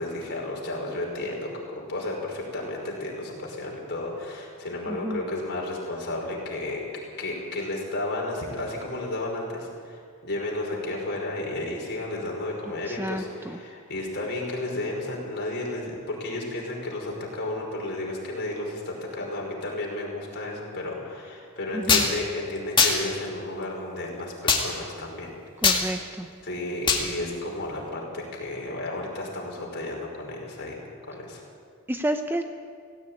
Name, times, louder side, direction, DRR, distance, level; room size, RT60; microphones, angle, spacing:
voice 1, 0.0-6.8 7.2-25.3 25.6-25.8 26.4-31.4, left 2 dB, 50° left, -1 dB, 5.3 m, -33 dB
voice 2, 4.9-5.2 12.9-13.6 21.7-22.0 25.6-26.3 31.9-32.4, right 1 dB, 10° right, 7 dB, 0.7 m, -30 dB
sound 1, 21.9-22.1 22.8-23.0 24.5-24.6 25.6-25.8 26.9-27.0, left 5 dB, 20° left, 2.1 m, -19 dB
17.5 x 16.5 x 8.9 m, 2.2 s
head